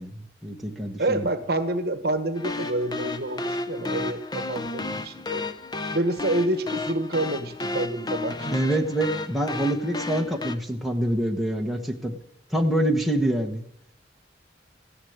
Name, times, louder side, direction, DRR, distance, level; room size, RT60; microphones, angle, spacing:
voice 1, 0.0-1.3 8.5-12.2 12.5-13.6, right 1 dB, ahead, 1 dB, 1.3 m, -26 dB
voice 2, 1.0-5.5 5.9-8.6 10.2-10.3, right 1 dB, 55° right, 10 dB, 1.2 m, -28 dB
sound 1, 2.4-10.6, left 3 dB, 20° left, 0.7 m, -32 dB
15.0 x 11.5 x 8.0 m, 0.72 s
head